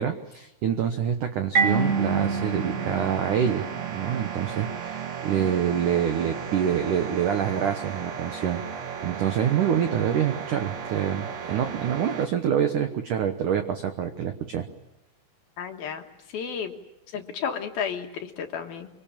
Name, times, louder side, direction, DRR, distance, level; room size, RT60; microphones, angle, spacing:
voice 1, 0.0-8.6 9.0-14.7, right 9 dB, 80° right, 7 dB, 1.8 m, -26 dB
Marimba xylophone, 1.5-4.2, right 4 dB, 30° right, 3.4 m, -27 dB
sound 1, 1.5-12.3, right 7 dB, 55° right, 1.9 m, -35 dB
voice 2, 15.6-16.8 17.1-18.9, left 7 dB, 65° left, 4 dB, 2.9 m, -32 dB
25.5 x 24.0 x 8.7 m, 0.90 s
omnidirectional pair, 5.4 m